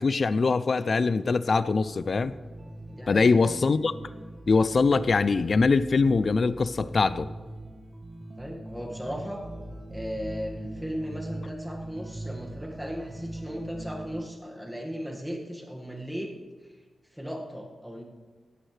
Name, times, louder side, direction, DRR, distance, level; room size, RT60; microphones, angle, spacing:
voice 1, 0.0-2.3 3.1-3.9 4.5-7.3, left 4 dB, 45° left, 15 dB, 0.4 m, -23 dB
sound 1, 1.7-14.2, right 1 dB, 25° right, 1.4 m, -41 dB
voice 2, 3.0-3.3 8.4-9.4 9.9-16.3 16.6-16.7 17.1-18.0, equal, 5° right, 0 dB, 1.8 m, -36 dB
17.0 x 12.5 x 3.3 m, 1.4 s
wide cardioid pair, 130°, 0 cm